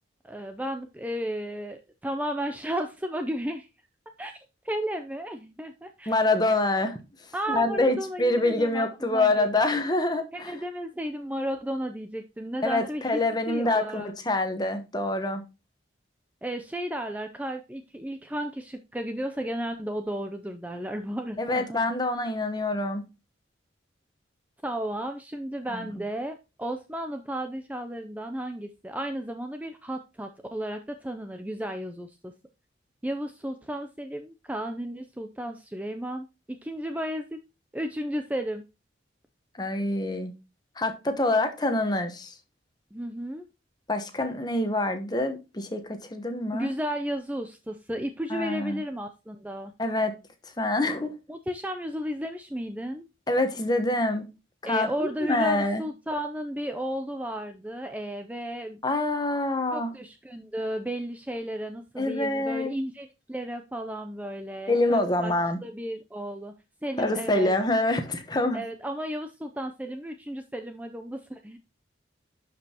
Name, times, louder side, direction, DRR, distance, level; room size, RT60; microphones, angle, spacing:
voice 1, 0.2-3.7 4.2-4.3 4.6-6.1 7.3-9.5 10.3-13.2 13.5-14.1 16.4-21.8 24.6-32.3 33.0-37.4 37.7-38.6 42.9-43.5 46.5-49.7 51.3-53.1 54.6-58.8 59.7-65.3 65.6-66.5 66.8-67.5 68.5-71.6, equal, 10° right, 0.5 m, -33 dB
voice 2, 6.1-7.0 7.5-10.5 12.6-15.4 21.4-23.0 25.7-25.8 39.6-40.3 40.8-42.3 43.9-46.7 48.3-48.8 49.8-50.1 50.6-51.1 53.3-54.2 54.6-55.8 58.8-59.9 62.0-62.7 64.7-65.6 67.0-68.6, left 2 dB, 20° left, 1.0 m, -26 dB
11.5 x 5.2 x 2.9 m
head